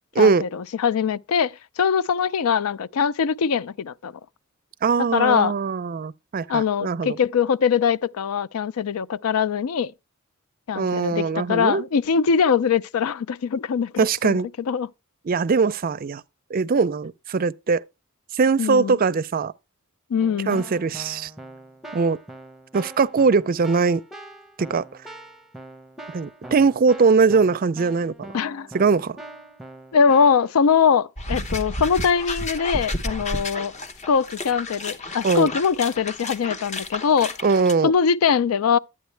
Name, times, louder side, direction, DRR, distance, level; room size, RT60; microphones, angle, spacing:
voice 1, 0.2-4.1 5.1-5.5 6.5-9.9 10.7-14.9 18.6-19.0 20.1-20.6 28.3-28.7 29.9-33.7 34.1-37.4 37.8-38.8, left 6 dB, 90° left, 0.4 m, -22 dB
voice 2, 4.8-7.2 10.7-11.8 14.0-14.5 15.3-16.2 16.5-17.8 18.3-19.5 20.5-21.3 21.9-22.2 22.7-24.0 24.6-24.8 26.1-28.3 28.7-29.2 35.2-35.5 37.4-37.9, right 4 dB, 45° right, 0.4 m, -21 dB
Keyboard (musical), 20.2-30.5, right 1 dB, ahead, 0.9 m, -42 dB
sound 1, 31.2-37.7, left 1 dB, 35° left, 1.0 m, -31 dB
11.5 x 8.8 x 3.3 m
head